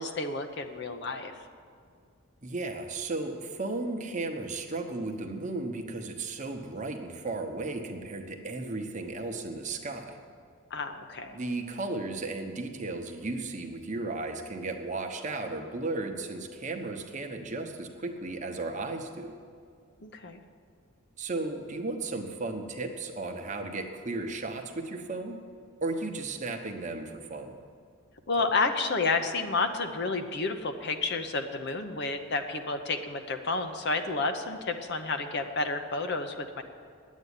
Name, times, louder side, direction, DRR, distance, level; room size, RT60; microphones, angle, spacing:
voice 1, 0.0-1.3 10.7-11.4 20.0-20.4 28.3-36.6, left 3 dB, 50° left, 7 dB, 0.8 m, -30 dB
voice 2, 2.4-10.2 11.3-19.3 21.2-25.4 25.8-27.5, right 2 dB, 35° right, 4 dB, 1.0 m, -35 dB
10.5 x 8.3 x 9.9 m, 2.2 s
head